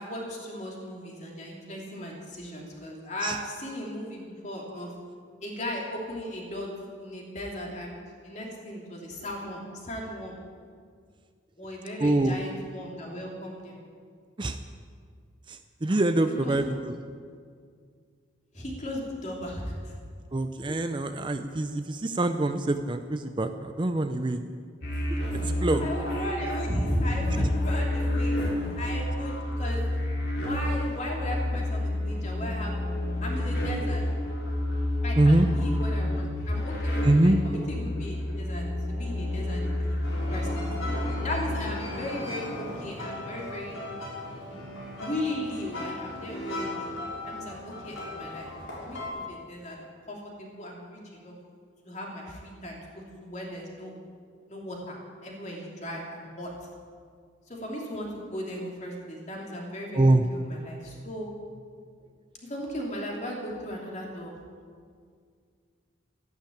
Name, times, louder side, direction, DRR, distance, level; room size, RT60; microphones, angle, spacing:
voice 1, 0.0-4.9 5.4-6.7 7.0-8.0 8.2-10.4 11.6-13.8 16.3-16.6 18.5-19.9 25.3-25.5 25.8-28.4 28.8-29.8 30.3-32.8 33.2-34.0 35.0-40.0 40.3-40.7 41.2-43.8 45.0-46.9 47.2-48.5 48.8-51.3 51.8-53.9 54.5-55.0 55.2-56.5 57.5-61.3 62.4-64.4, equal, 35° left, -1 dB, 3.2 m, -36 dB
voice 2, 12.0-12.4 14.4-14.6 15.5-16.9 20.3-24.4 25.6-25.8 27.3-27.5 35.2-35.5 37.0-37.4 59.9-60.2, right 2 dB, 25° right, 8 dB, 0.5 m, -24 dB
sound 1, 24.8-41.3, left 1 dB, 55° left, 4.2 m, -29 dB
sound 2, 40.0-49.1, left 1 dB, 85° left, 5.8 m, -37 dB
13.5 x 12.0 x 8.7 m, 2.1 s
head